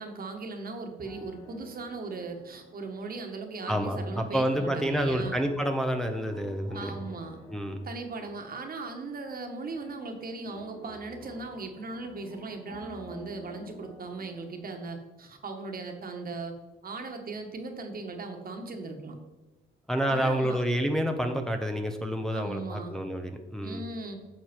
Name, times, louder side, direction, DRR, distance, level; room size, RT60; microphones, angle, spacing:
voice 1, 0.0-5.4 6.7-7.4 7.8-16.5 16.8-19.1 20.1-20.6 22.3-23.0 23.6-24.2, right 3 dB, 45° right, 4 dB, 1.7 m, -38 dB
sound 1, 1.0-3.4 3.7-9.4 9.7-14.8, left 1 dB, 30° left, 2.8 m, -51 dB
voice 2, 3.7-6.9 7.5-7.8 19.9-23.8, equal, ahead, 4 dB, 0.9 m, -29 dB
10.5 x 6.7 x 4.5 m, 1.2 s
cardioid pair, 90°, 20 cm